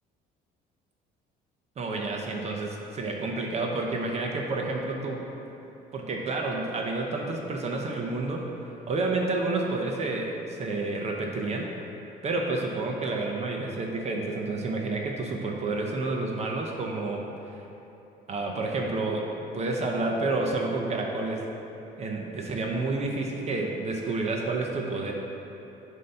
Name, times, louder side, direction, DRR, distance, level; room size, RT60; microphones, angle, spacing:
voice 1, 1.8-5.3 5.9-8.4 8.9-11.7 12.2-17.3 18.3-19.3 19.5-21.4 22.0-25.1, right 3 dB, 40° right, 0 dB, 0.7 m, -29 dB
7.4 x 2.8 x 5.4 m, 3.0 s
cardioid pair, 110°, 17 cm